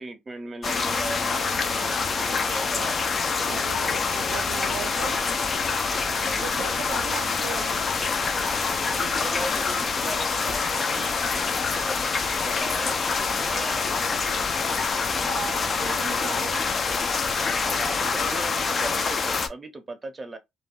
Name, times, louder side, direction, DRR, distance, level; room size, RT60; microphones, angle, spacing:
voice 1, 0.0-3.0 5.1-5.4 6.3-7.3 8.9-13.9 15.6-16.4 17.7-20.4, right 2 dB, 25° right, 0.6 m, -39 dB
sound 1, 0.6-19.5, left 4 dB, 35° left, 0.4 m, -26 dB
voice 2, 3.5-5.2 6.4-7.8 13.5-13.7 15.2-16.6, right 8 dB, 90° right, 0.4 m, -37 dB
sound 2, 4.7-18.7, left 3 dB, 60° left, 1.1 m, -46 dB
2.4 x 2.2 x 3.4 m
cardioid pair, 125°, 0 cm